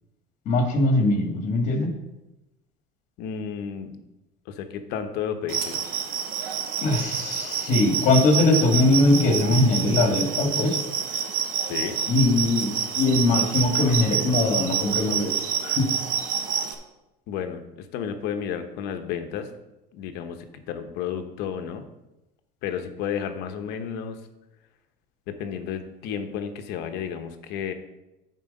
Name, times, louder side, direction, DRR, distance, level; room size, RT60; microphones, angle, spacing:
voice 1, 0.5-1.9 6.8-10.8 12.1-15.3 15.6-15.8, left 2 dB, 40° left, 3 dB, 1.7 m, -21 dB
voice 2, 3.2-4.0 4.5-5.8 11.6-12.0 17.3-19.5 19.9-21.9 22.6-24.2 25.3-27.7, left 8 dB, 60° left, 7 dB, 0.9 m, -32 dB
sound 1, 5.5-16.7, right 8 dB, 50° right, 1.0 m, -28 dB
9.5 x 4.6 x 5.3 m, 0.97 s
cardioid pair, 155°, 19 cm